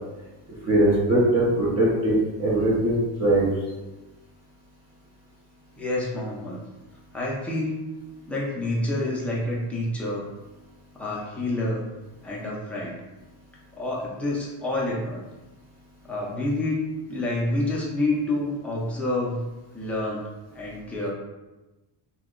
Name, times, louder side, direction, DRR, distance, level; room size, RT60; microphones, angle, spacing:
voice 1, 0.7-3.5, right 1 dB, 35° right, -6 dB, 0.7 m, -21 dB
voice 2, 5.8-6.6 7.1-7.8 8.3-10.3 10.9-11.8 12.2-13.0 13.7-15.2 16.0-19.5 19.7-21.1, left 1 dB, 5° left, -5 dB, 0.4 m, -28 dB
2.8 x 2.2 x 3.6 m, 1.1 s
cardioid pair, 160°, 45 cm